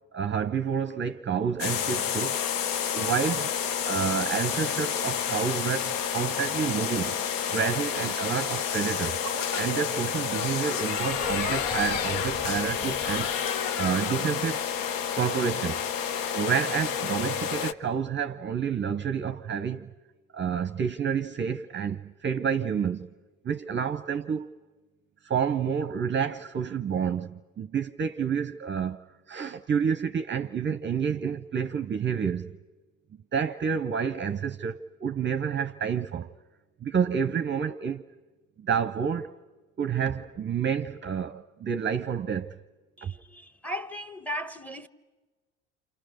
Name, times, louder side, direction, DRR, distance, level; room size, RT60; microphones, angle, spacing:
voice 1, 0.1-2.4 2.9-3.5 3.8-9.2 9.5-13.3 13.7-14.6 15.1-15.8 16.3-19.9 20.3-23.1 23.4-24.5 25.2-29.0 29.3-32.5 33.3-36.3 36.8-38.0 38.6-39.3 39.8-42.6 43.0-43.1, right 7 dB, 30° right, 0.8 m, -29 dB
sound 1, 1.6-17.7, left 8 dB, 65° left, 0.9 m, -29 dB
Human voice / Subway metro underground, 7.5-13.2, left 1 dB, 50° left, 2.0 m, -42 dB
sound 2, 11.0-13.8, equal, 30° left, 1.8 m, -45 dB
voice 2, 43.0-44.9, equal, 5° left, 1.1 m, -36 dB
28.0 x 28.0 x 6.6 m
hypercardioid pair, 70°, 37 cm